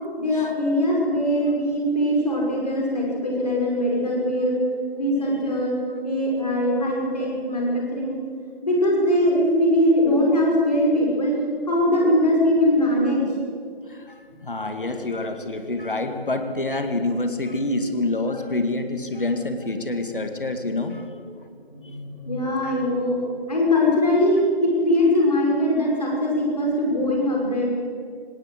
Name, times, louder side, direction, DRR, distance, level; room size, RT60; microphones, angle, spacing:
voice 1, 0.2-4.6 5.0-5.8 6.0-8.1 8.6-11.3 11.7-13.2 21.6-23.2 23.5-27.7, left 1 dB, 40° left, -2 dB, 5.9 m, -21 dB
voice 2, 13.9-21.1 22.6-22.7, left 2 dB, 55° left, 7 dB, 2.2 m, -27 dB
18.5 x 18.0 x 8.0 m, 2.1 s
figure-of-eight pair, 175°, 31 cm